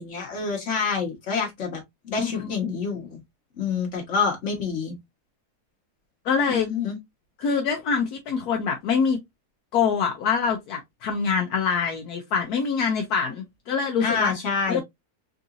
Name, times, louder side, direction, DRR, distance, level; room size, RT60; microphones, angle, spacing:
voice 1, 0.0-3.2 3.6-5.0 6.5-7.0 14.0-14.8, left 5 dB, 50° left, 1.5 m, -27 dB
voice 2, 6.2-6.7 7.4-9.2 9.7-14.3 14.7-14.8, left 6 dB, 75° left, 1.1 m, -24 dB
3.8 x 2.6 x 2.4 m
omnidirectional pair, 1.7 m